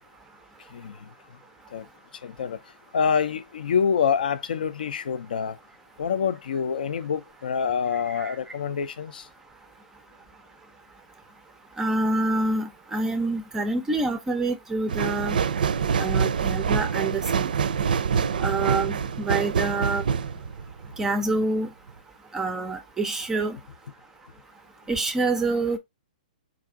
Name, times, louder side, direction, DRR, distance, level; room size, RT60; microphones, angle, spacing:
voice 1, 2.2-2.6 2.9-5.6 6.0-9.2, left 7 dB, 75° left, 0.5 m, -26 dB
voice 2, 11.8-15.4 16.0-17.5 18.4-20.0 21.0-21.7 22.3-23.6 24.9-25.8, right 2 dB, 10° right, 0.4 m, -26 dB
sound 1, 14.9-21.4 21.9-22.0, right 6 dB, 75° right, 0.4 m, -26 dB
4.8 x 2.4 x 3.6 m
hypercardioid pair, 145°, 5 cm